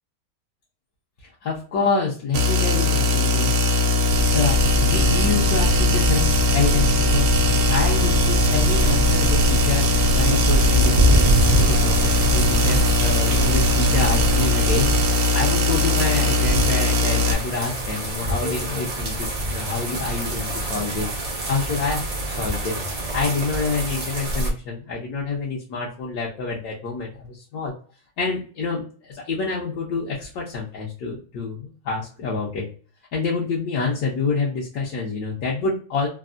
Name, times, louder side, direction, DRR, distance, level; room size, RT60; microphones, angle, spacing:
voice 1, 1.4-3.5 4.3-22.8 23.1-27.7 28.2-32.7 33.1-36.1, left 4 dB, 80° left, -4 dB, 1.3 m, -27 dB
sound 1, 2.3-17.3, left 2 dB, 75° right, 1.1 m, -20 dB
sound 2, 4.1-15.1, right 2 dB, 60° left, 0.8 m, -25 dB
sound 3, 7.8-24.5, right 1 dB, 55° right, 0.4 m, -26 dB
3.5 x 2.0 x 2.3 m, 0.40 s
omnidirectional pair, 1.6 m